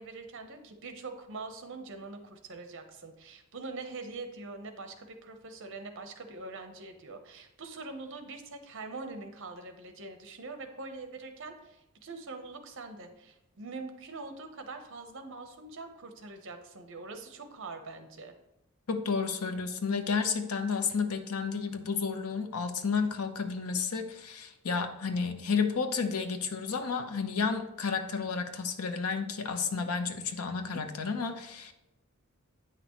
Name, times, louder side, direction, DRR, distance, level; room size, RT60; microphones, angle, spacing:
voice 1, 0.0-18.3, right 3 dB, 60° right, 6 dB, 0.9 m, -43 dB
voice 2, 18.9-31.7, left 5 dB, 85° left, 7 dB, 0.8 m, -31 dB
9.0 x 5.9 x 3.1 m, 0.92 s
head